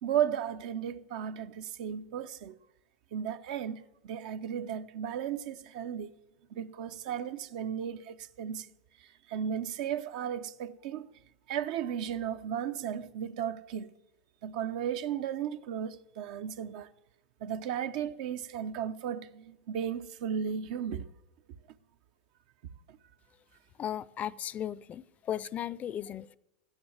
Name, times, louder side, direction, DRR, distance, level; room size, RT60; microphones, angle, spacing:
voice 1, 0.0-2.5 3.1-6.1 6.5-8.7 9.3-11.1 11.5-13.9 14.4-16.9 17.4-21.1 22.9-23.0, right 9 dB, 65° right, 0.9 m, -35 dB
voice 2, 23.8-26.4, left 10 dB, 35° left, 0.5 m, -36 dB
14.0 x 10.0 x 7.2 m
hypercardioid pair, 100°, 4 cm